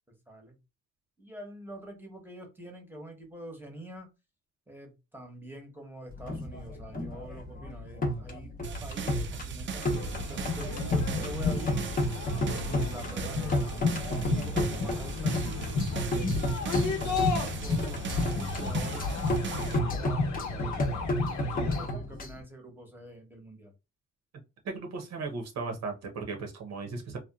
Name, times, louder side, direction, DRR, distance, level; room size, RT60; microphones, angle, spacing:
voice 1, 0.1-0.6 1.2-4.1 4.7-8.5 8.8-11.9 12.4-15.8 16.4-16.7 17.0-19.1 19.5-20.9 21.4-23.7, right 1 dB, 5° right, 3 dB, 0.9 m, -45 dB
sound 1, 6.1-22.4, left 1 dB, 30° left, 0.7 m, -33 dB
sound 2, 8.6-19.8, right 6 dB, 40° right, 0.4 m, -39 dB
sound 3, 9.9-21.9, left 4 dB, 75° left, 0.9 m, -32 dB
voice 2, 24.6-27.2, right 4 dB, 60° right, 3 dB, 0.8 m, -36 dB
2.8 x 2.2 x 2.3 m, 0.26 s
cardioid pair, 90°, 30 cm